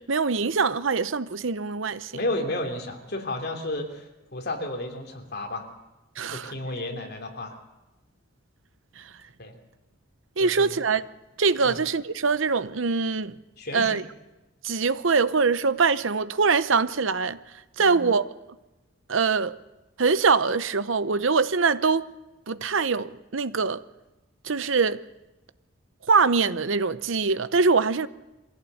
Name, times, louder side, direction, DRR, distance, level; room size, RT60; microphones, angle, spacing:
voice 1, 0.0-2.1 6.2-6.5 10.4-11.1 11.4-13.3 13.7-14.0 14.6-17.4 17.8-18.2 19.1-19.5 20.0-22.0 22.5-23.8 24.5-25.0 26.1-28.1, right 4 dB, 70° right, 0.8 m, -23 dB
voice 2, 2.1-5.7 6.3-7.6 9.4-9.6 10.4-10.8 11.6-11.8 13.6-14.0 17.8-18.0, left 1 dB, 50° left, 3.1 m, -32 dB
23.0 x 16.0 x 7.9 m
head